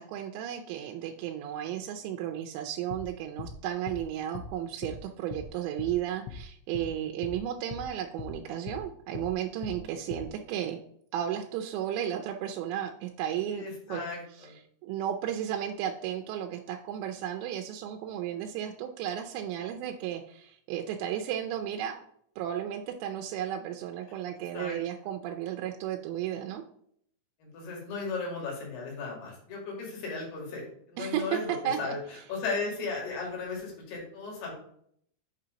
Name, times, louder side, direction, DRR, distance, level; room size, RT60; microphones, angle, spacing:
voice 1, 0.0-10.8 11.1-14.0 14.3-22.0 22.4-26.6 31.0-31.4 31.6-32.0, right 10 dB, 85° right, 3 dB, 2.8 m, -34 dB
sound 1, 2.9-3.1 3.4-3.6 3.9-4.0 4.4-4.5 4.8-5.0 5.3-5.5 5.8-6.0 6.3-6.4 6.7-6.9 7.2-7.4 7.7-7.9 8.2-8.4 8.7-8.8 9.2-9.3 9.6-9.8 10.1-10.3, left 7 dB, 85° left, 2.8 m, -40 dB
voice 2, 13.5-14.5 24.5-24.8 27.4-30.6 30.9-34.5, left 4 dB, 65° left, -2 dB, 3.8 m, -36 dB
8.4 x 2.8 x 5.0 m, 0.65 s
omnidirectional pair, 5.0 m